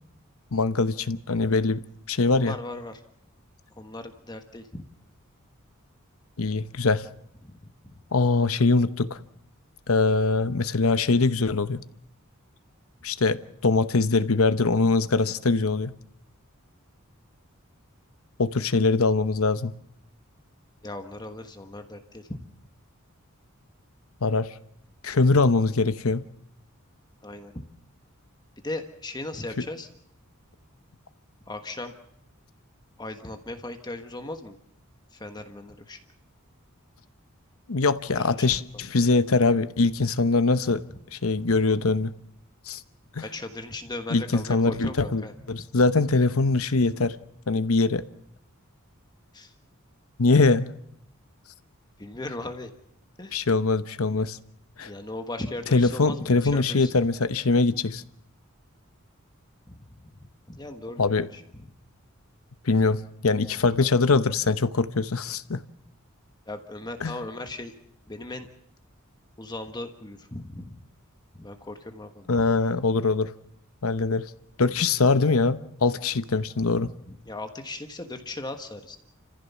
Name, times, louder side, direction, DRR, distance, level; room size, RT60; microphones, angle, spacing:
voice 1, 0.5-1.8 2.1-2.6 6.4-7.1 8.1-9.2 9.9-11.8 13.0-15.9 18.4-19.7 24.2-24.5 25.0-26.2 37.7-40.8 41.1-42.1 42.7-42.8 43.2-43.3 44.1-45.2 45.5-47.1 47.5-48.0 50.2-50.7 53.3-54.4 54.8-54.9 55.7-58.0 61.0-61.3 62.6-65.6 67.0-67.1 72.3-73.3 73.8-74.3 74.6-76.9, left 3 dB, 75° left, 1.0 m, -22 dB
voice 2, 2.3-3.0 3.8-4.8 7.4-7.9 20.8-22.5 27.2-27.6 28.6-29.9 31.5-31.9 33.0-34.6 35.1-36.0 38.2-38.5 38.7-38.8 41.4-41.6 43.2-45.3 45.6-45.7 49.3-49.5 52.0-52.7 53.2-53.4 54.8-56.9 59.7-60.1 60.5-61.7 66.4-67.7 68.1-68.5 69.4-70.8 71.3-72.5 76.6-79.0, left 2 dB, 20° left, 1.5 m, -38 dB
29.0 x 15.0 x 7.1 m
head